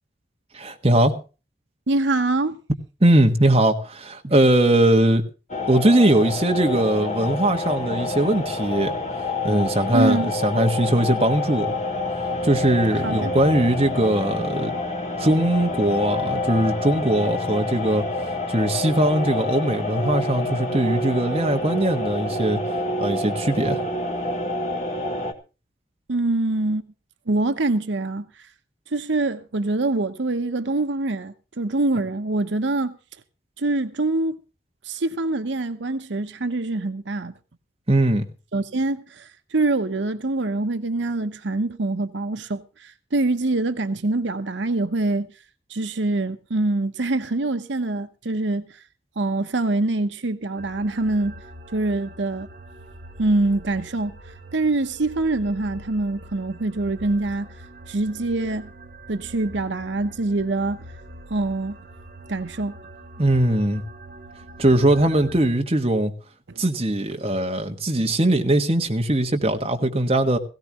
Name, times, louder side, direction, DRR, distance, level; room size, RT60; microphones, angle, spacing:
voice 1, 0.5-1.1 3.0-5.2 5.7-9.0 9.4-11.7 12.4-14.7 15.2-18.0 18.5-22.6 23.0-23.8 37.9-38.3 63.2-63.8 64.6-66.1 66.6-70.4, right 1 dB, 30° right, 1.3 m, -20 dB
voice 2, 1.9-2.6 9.9-10.3 13.0-13.3 26.1-26.9 27.3-28.5 28.9-32.9 33.6-34.4 34.8-37.4 38.5-45.3 45.7-48.8 49.2-51.4 51.7-52.5 53.2-54.1 54.5-57.5 57.9-58.7 59.1-60.8 61.3-61.8 62.3-62.7 66.5-66.6, right 2 dB, 80° right, 0.9 m, -24 dB
sound 1, 5.5-25.3, left 2 dB, 40° left, 1.6 m, -28 dB
sound 2, 50.6-65.5, right 1 dB, 50° right, 1.7 m, -43 dB
17.5 x 16.5 x 3.0 m
head